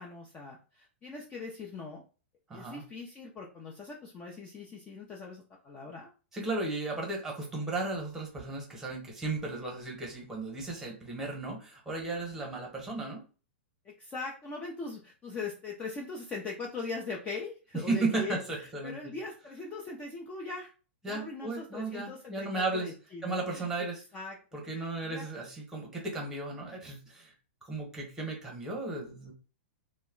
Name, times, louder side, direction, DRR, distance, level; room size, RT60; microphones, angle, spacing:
voice 1, 0.0-2.0 2.5-6.1 13.8-20.7 21.0-23.7 24.1-25.2, left 4 dB, 20° left, -1 dB, 0.4 m, -41 dB
voice 2, 2.5-2.8 6.3-13.2 17.9-19.0 21.0-22.9 23.2-24.0 24.5-27.3 27.6-29.3, right 3 dB, 5° right, -1 dB, 1.0 m, -35 dB
2.1 x 2.1 x 3.7 m, 0.36 s
hypercardioid pair, 145°, 7 cm